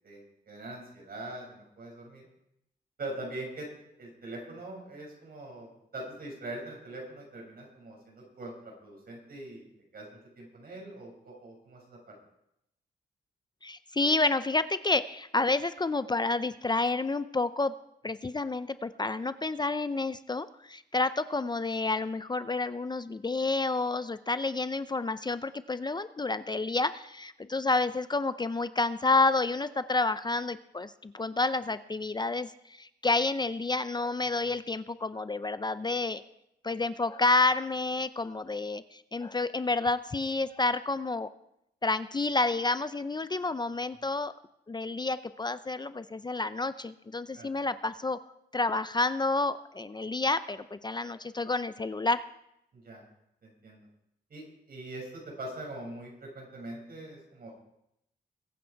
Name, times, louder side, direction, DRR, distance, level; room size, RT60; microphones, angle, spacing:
voice 1, 0.0-2.3 3.0-3.7 4.0-9.6 9.9-12.1 47.3-47.5 52.7-53.0 53.4-53.9 54.3-57.5, right 2 dB, 60° right, 0 dB, 6.2 m, -43 dB
voice 2, 13.6-17.7 18.0-36.2 36.6-41.3 41.8-44.3 44.7-48.2 48.5-52.2, left 3 dB, 25° left, 13 dB, 0.5 m, -29 dB
22.0 x 8.9 x 4.6 m, 0.81 s
cardioid pair, 85°, 17 cm